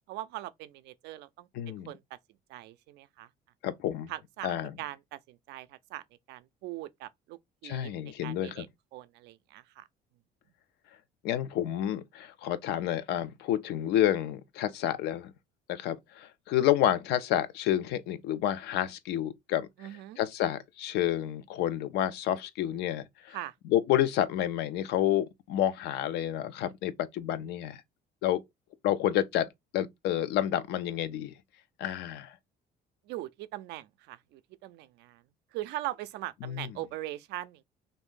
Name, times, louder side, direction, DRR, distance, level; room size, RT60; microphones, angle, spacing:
voice 1, 0.1-2.0 2.5-3.3 4.1-8.7 8.9-9.9 19.8-20.2 23.3-23.5 33.1-35.2 35.5-37.6, right 15 dB, 85° right, 0.4 m, -41 dB
voice 2, 1.5-1.9 3.6-4.1 4.4-4.7 7.6-8.6 11.2-15.3 15.7-19.7 20.2-23.4 23.6-27.8 28.2-28.4 28.8-31.3 31.8-32.4 36.4-36.7, left 12 dB, 80° left, 0.5 m, -29 dB
2.6 x 2.6 x 3.6 m
cardioid pair, 110°, 17 cm